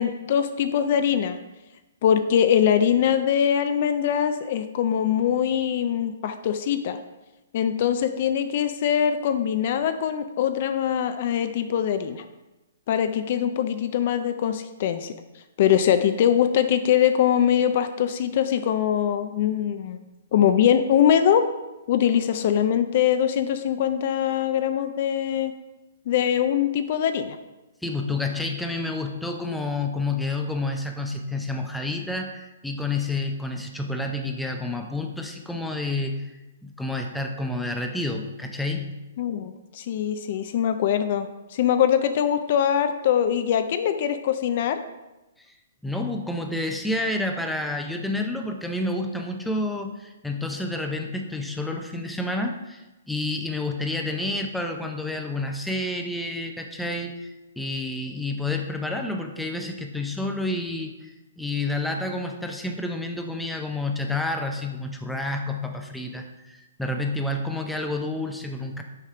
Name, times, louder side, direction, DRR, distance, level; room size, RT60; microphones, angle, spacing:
voice 1, 0.0-1.4 2.0-7.0 7.5-12.2 12.9-15.1 15.6-20.0 20.3-21.4 21.9-25.5 26.1-27.4 39.2-44.8, left 9 dB, 50° left, 9 dB, 0.4 m, -22 dB
voice 2, 27.8-36.2 36.6-38.9 45.8-57.3 57.6-68.8, left 2 dB, ahead, 3 dB, 0.5 m, -29 dB
6.5 x 4.2 x 4.9 m, 1.0 s
hypercardioid pair, 145°, 0 cm